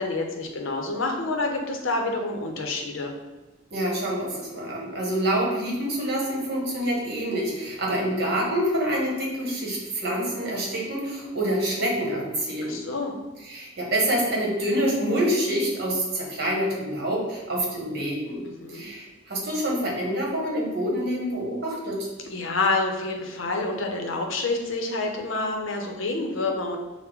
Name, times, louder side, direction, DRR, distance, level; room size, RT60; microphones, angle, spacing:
voice 1, 0.0-3.1 12.6-13.1 18.6-18.8 22.3-26.8, left 3 dB, 90° left, 2 dB, 0.7 m, -28 dB
voice 2, 3.7-12.8 13.5-18.4 18.7-22.1, right 1 dB, 55° right, -3 dB, 1.1 m, -26 dB
5.8 x 2.1 x 3.5 m, 1.1 s
head